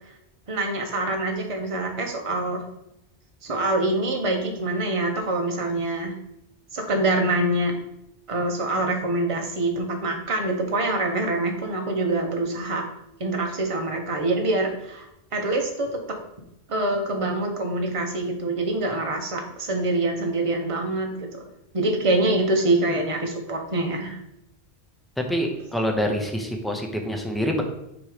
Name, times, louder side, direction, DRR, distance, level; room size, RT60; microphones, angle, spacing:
voice 1, 0.5-2.6 3.4-6.1 6.7-7.7 8.3-12.8 13.2-15.1 15.3-15.9 16.7-21.5 21.7-24.2, right 2 dB, 35° right, 2 dB, 0.9 m, -25 dB
voice 2, 25.3-27.6, equal, ahead, 3 dB, 0.5 m, -26 dB
6.5 x 3.1 x 5.0 m, 0.83 s
omnidirectional pair, 1.1 m